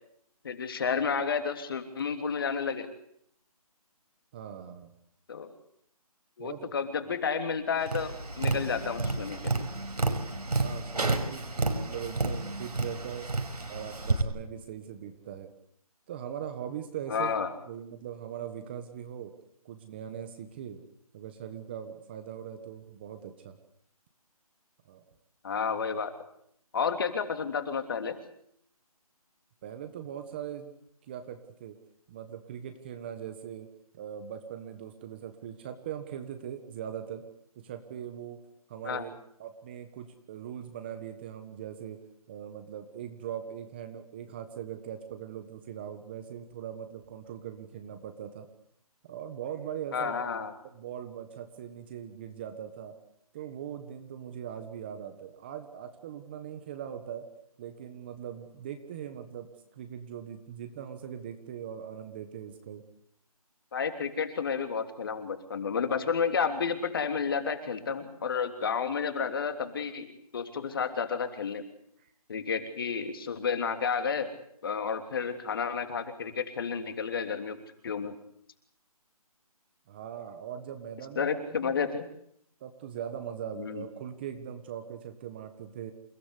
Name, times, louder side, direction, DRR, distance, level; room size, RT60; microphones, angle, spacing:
voice 1, 0.4-2.9 5.3-5.5 6.4-9.6 17.1-17.5 25.4-26.1 26.7-28.2 38.8-39.1 49.9-50.5 63.7-70.1 70.3-71.6 72.3-74.3 74.6-78.1 81.2-82.0 83.6-83.8, left 6 dB, 35° left, 7 dB, 3.1 m, -31 dB
voice 2, 4.3-4.9 6.4-6.7 10.5-13.3 13.7-15.5 16.1-17.3 17.7-19.3 19.6-20.8 21.1-23.6 24.9-25.0 29.6-30.7 31.0-31.8 32.1-37.2 37.5-38.4 38.7-39.1 39.4-42.0 42.3-48.5 49.0-50.2 50.6-53.0 53.3-57.3 57.6-62.8 72.0-72.1 79.9-81.9 82.6-85.9, right 9 dB, 15° right, 8 dB, 1.4 m, -41 dB
Tap, 7.8-14.2, right 3 dB, 90° right, 5.5 m, -31 dB
28.5 x 17.0 x 8.3 m, 0.70 s
hypercardioid pair, 170°, 20 cm